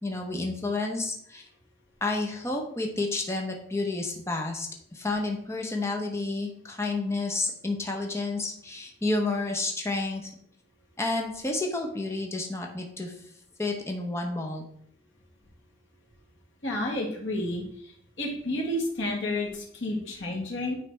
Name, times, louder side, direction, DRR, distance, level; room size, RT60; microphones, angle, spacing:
voice 1, 0.0-1.5 2.0-10.3 11.0-13.1 13.6-14.6, left 2 dB, 15° left, 1 dB, 0.8 m, -30 dB
voice 2, 16.6-17.9 18.2-20.7, left 1 dB, 65° left, -1 dB, 1.9 m, -30 dB
9.1 x 3.3 x 4.6 m, 0.68 s
head